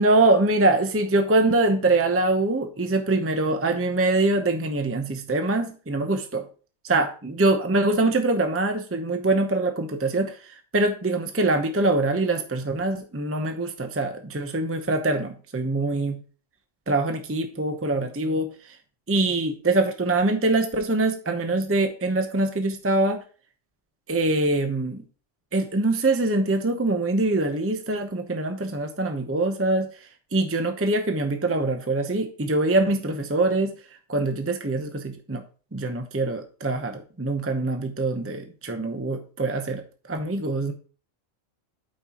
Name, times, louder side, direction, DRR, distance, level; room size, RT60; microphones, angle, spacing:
voice 1, 0.0-6.4 6.8-16.2 16.9-18.5 19.1-23.2 24.1-25.0 25.5-29.9 30.3-33.7 34.1-35.4 35.7-40.7, right 2 dB, 15° right, 6 dB, 0.7 m, -24 dB
12.5 x 5.4 x 3.0 m, 0.39 s
omnidirectional pair, 1.3 m